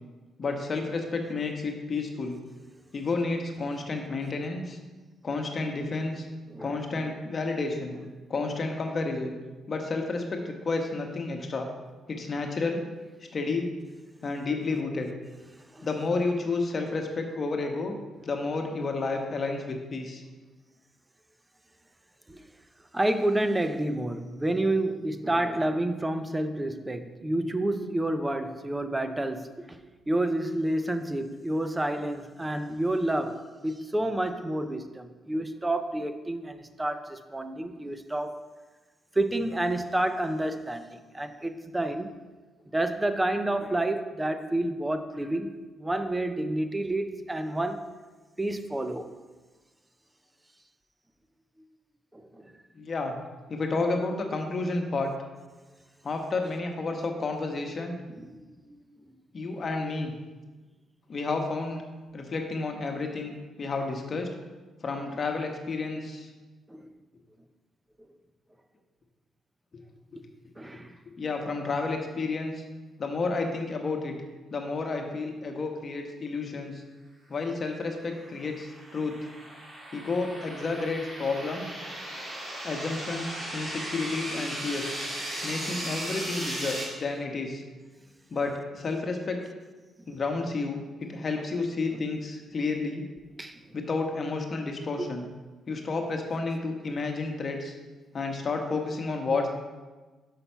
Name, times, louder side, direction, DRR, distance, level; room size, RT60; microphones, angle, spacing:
voice 1, 0.4-2.4 2.9-4.8 5.2-6.3 6.6-7.9 8.3-9.3 9.7-11.7 12.1-12.9 13.3-13.7 14.2-15.1 15.8-18.0 18.2-20.2 52.7-53.1 53.5-55.1 56.0-58.0 59.3-60.1 61.1-61.8 62.1-63.3 63.6-64.3 64.8-66.3 71.2-72.6 73.0-74.1 74.5-76.8 77.3-79.2 79.9-81.8 82.6-85.0 85.4-87.6 88.3-89.4 90.1-93.0 93.7-95.2 95.7-97.7 98.1-99.5, left 3 dB, 40° left, 3 dB, 1.1 m, -31 dB
voice 2, 6.5-7.0 15.7-15.9 22.3-22.4 22.9-29.8 30.1-38.4 39.2-42.1 42.7-45.5 45.8-47.8 48.4-49.1 52.1-52.5 58.2-58.5 66.7-66.9 70.6-71.0 90.1-90.2 93.4-93.6 95.0-95.1, right 1 dB, 15° right, 9 dB, 0.6 m, -29 dB
sound 1, 77.9-86.8, right 1 dB, 30° right, 2.6 m, -37 dB
5.8 x 5.7 x 5.6 m, 1.3 s
cardioid pair, 105°, 0 cm